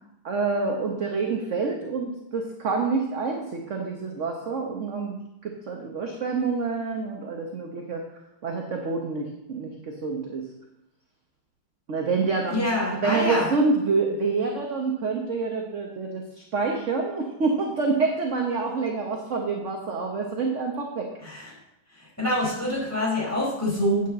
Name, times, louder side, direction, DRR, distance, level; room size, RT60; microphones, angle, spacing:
voice 1, 0.2-8.0 8.4-10.4 11.9-21.1, right 4 dB, 45° right, 1 dB, 1.2 m, -27 dB
voice 2, 12.5-13.5 21.2-21.5 22.0-24.1, left 1 dB, 10° left, -6 dB, 4.6 m, -26 dB
9.1 x 5.9 x 7.4 m, 0.89 s
omnidirectional pair, 2.0 m